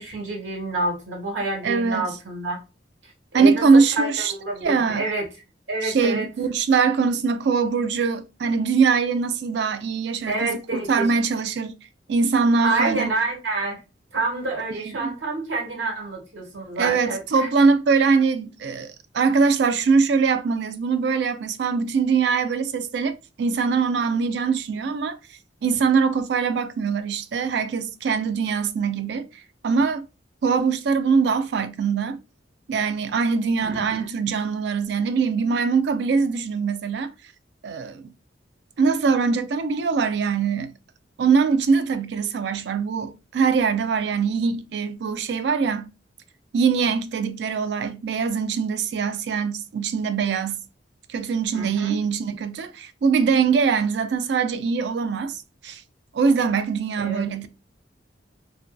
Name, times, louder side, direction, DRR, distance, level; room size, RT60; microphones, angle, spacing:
voice 1, 0.0-2.6 3.3-5.3 5.7-6.3 10.3-11.0 12.6-13.8 14.1-17.5 33.6-34.1 51.5-52.0 57.0-57.3, right 3 dB, 80° right, 1.2 m, -28 dB
voice 2, 1.6-2.1 3.3-4.3 4.6-5.1 5.8-11.7 12.1-13.1 14.8-15.1 16.8-29.3 29.6-30.0 30.4-32.2 32.7-37.1 37.6-38.1 38.8-40.7 41.2-45.9 46.5-50.6 51.1-55.8 56.1-57.5, right 5 dB, 65° right, 0.3 m, -22 dB
2.6 x 2.2 x 2.2 m
head